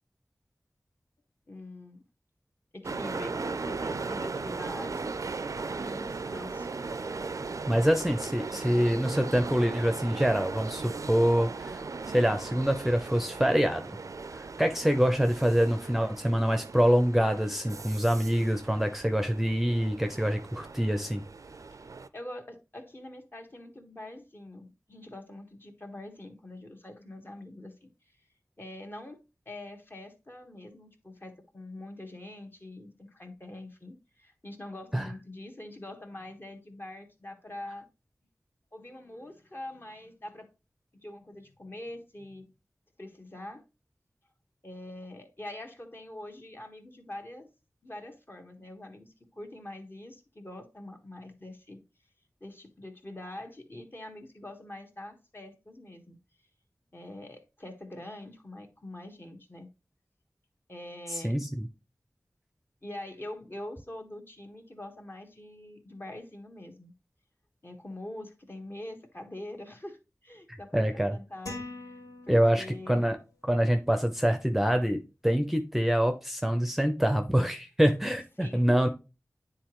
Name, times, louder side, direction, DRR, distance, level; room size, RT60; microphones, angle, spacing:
voice 1, 1.5-2.0 2.7-5.2 5.7-6.7 21.7-21.8 22.1-27.9 28.6-29.2 29.4-37.9 38.7-40.5 40.9-42.5 43.0-43.6 44.6-47.5 47.8-51.8 52.4-56.2 56.9-59.7 60.7-61.4 62.8-66.9 67.6-71.6 72.3-73.1 78.4-78.7, left 1 dB, 35° left, 1.3 m, -44 dB
sound 1, 2.8-22.1, right 4 dB, 65° right, 0.4 m, -38 dB
voice 2, 7.7-11.8 12.1-14.0 14.3-21.2 34.9-35.1 61.1-61.7 70.5-71.2 72.3-73.2 73.5-78.9, equal, 5° right, 0.7 m, -26 dB
sound 2, 71.5-73.0, left 2 dB, 70° left, 2.7 m, -42 dB
9.4 x 3.9 x 3.1 m
wide cardioid pair, 60°, 6 cm